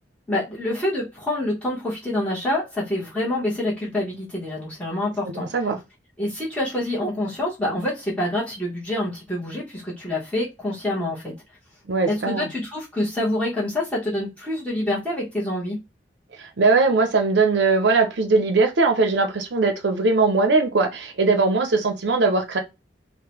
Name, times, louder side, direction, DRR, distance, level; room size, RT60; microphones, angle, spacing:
voice 1, 0.3-5.5 6.2-11.3 12.1-15.8, left 1 dB, 10° left, 1.0 m, -26 dB
voice 2, 5.3-5.8 11.9-12.5 16.4-22.6, right 3 dB, 80° right, 0.6 m, -20 dB
3.7 x 2.1 x 2.9 m
head